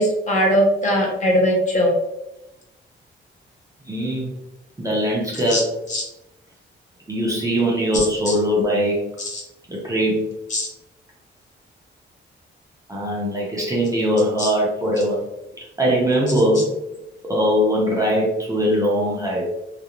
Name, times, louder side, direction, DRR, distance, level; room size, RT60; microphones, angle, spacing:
voice 1, 0.0-1.9 5.5-5.6 5.9-6.0 8.3-8.4 9.3-9.4 10.5-10.7 14.4-14.5, equal, 35° left, -2 dB, 0.7 m, -19 dB
voice 2, 3.8-4.3 4.8-5.7 7.1-9.2 9.7-10.3 12.9-15.2 15.6-16.8 17.2-19.4, equal, 15° right, -4 dB, 0.6 m, -21 dB
2.4 x 2.0 x 2.8 m, 0.90 s
wide cardioid pair, 155°, 21 cm